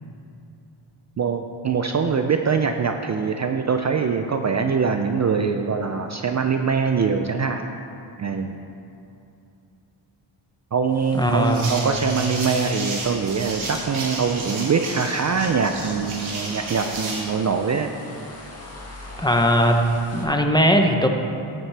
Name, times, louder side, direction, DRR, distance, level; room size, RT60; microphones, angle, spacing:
voice 1, 1.2-7.7 8.2-8.6 10.7-17.9, right 5 dB, 35° right, 5 dB, 0.4 m, -23 dB
sound 1, 10.9-20.2, left 1 dB, 30° left, 1.6 m, -41 dB
voice 2, 11.1-11.9 19.2-19.8 20.1-21.1, equal, 10° left, 3 dB, 0.6 m, -19 dB
sound 2, 11.4-17.3, right 3 dB, 75° right, 2.0 m, -33 dB
14.0 x 7.2 x 3.3 m, 2.7 s
wide cardioid pair, 115°, 49 cm